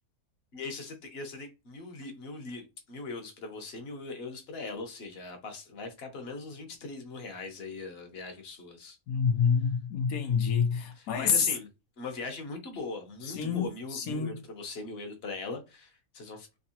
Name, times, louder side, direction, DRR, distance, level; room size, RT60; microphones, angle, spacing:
voice 1, 0.5-9.0 10.9-11.7 12.0-16.5, left 3 dB, 50° left, 1.1 m, -40 dB
voice 2, 9.1-11.4 13.2-13.6 13.9-14.4, left 6 dB, 90° left, 1.3 m, -27 dB
3.6 x 2.9 x 2.8 m
omnidirectional pair, 1.5 m